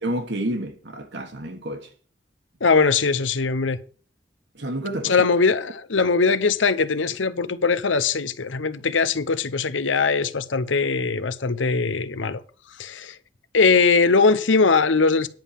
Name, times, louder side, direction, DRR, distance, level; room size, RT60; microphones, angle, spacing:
voice 1, 0.0-1.9 4.5-5.3, right 1 dB, 70° right, 1.4 m, -29 dB
voice 2, 2.6-3.8 5.0-12.4 12.8-13.2 13.5-15.3, left 4 dB, 90° left, 0.8 m, -21 dB
10.5 x 5.6 x 7.3 m
head